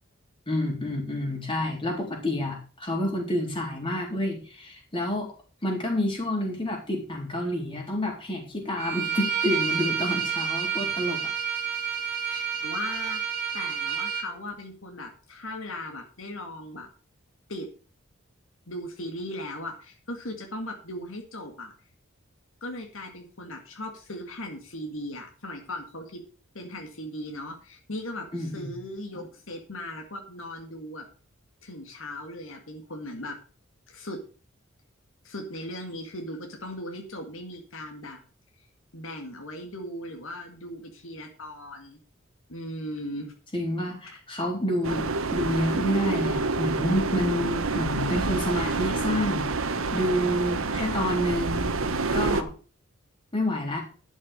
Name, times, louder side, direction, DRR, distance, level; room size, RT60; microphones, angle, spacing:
voice 1, 0.5-5.3 5.6-11.3 28.3-28.7 43.5-51.7 52.1-52.5 53.3-53.8, left 1 dB, 25° left, 0 dB, 3.9 m, -28 dB
Bowed string instrument, 8.8-14.3, right 7 dB, 50° right, 2.8 m, -29 dB
voice 2, 12.3-13.2 13.5-16.9 17.5-17.7 18.7-21.7 22.6-26.2 26.5-31.0 31.6-33.4 33.9-34.2 35.2-38.2 38.9-42.0 42.5-43.3, left 1 dB, 70° left, 3 dB, 2.0 m, -38 dB
sound 1, 44.8-52.4, right 3 dB, 80° right, 1.2 m, -28 dB
11.5 x 6.3 x 6.7 m, 0.38 s
head